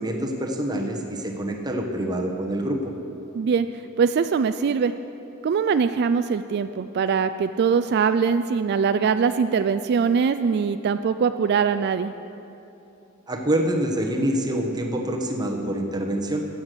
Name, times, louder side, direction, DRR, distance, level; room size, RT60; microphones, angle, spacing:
voice 1, 0.0-2.8 13.3-16.4, right 1 dB, 20° right, 1 dB, 1.2 m, -26 dB
voice 2, 3.3-3.7 4.0-4.9 5.4-12.1, right 6 dB, 50° right, 10 dB, 0.3 m, -22 dB
15.0 x 7.9 x 6.7 m, 2.8 s
head